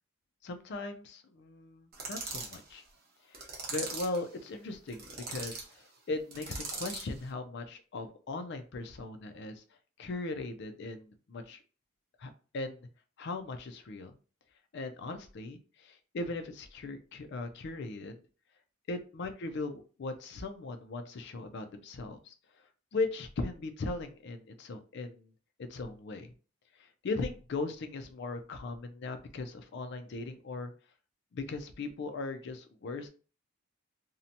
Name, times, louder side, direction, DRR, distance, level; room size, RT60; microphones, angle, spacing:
voice 1, 0.4-2.8 3.3-3.4 3.7-9.6 10.0-11.6 12.2-12.9 13.2-14.1 14.7-18.2 18.9-22.3 22.9-25.3 25.6-26.3 26.8-30.7 31.3-33.1, left 3 dB, 50° left, 7 dB, 0.4 m, -38 dB
sound 1, 1.9-2.6 3.3-4.2 4.9-5.7 6.3-7.1, right 4 dB, 45° right, 0.7 m, -40 dB
2.6 x 2.1 x 2.7 m, 0.37 s
head